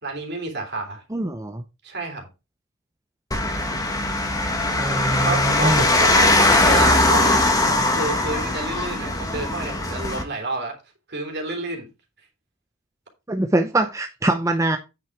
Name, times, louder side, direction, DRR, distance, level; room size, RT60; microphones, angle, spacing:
voice 1, 0.0-1.0 1.8-2.3 5.2-7.5 7.9-10.8 11.1-11.9, right 3 dB, 55° right, 3.3 m, -29 dB
voice 2, 1.1-1.6 4.8-5.8 13.3-14.8, right 1 dB, 15° right, 0.6 m, -23 dB
sound 1, 3.3-10.2, left 2 dB, 20° left, 1.7 m, -20 dB
9.1 x 5.9 x 4.7 m
head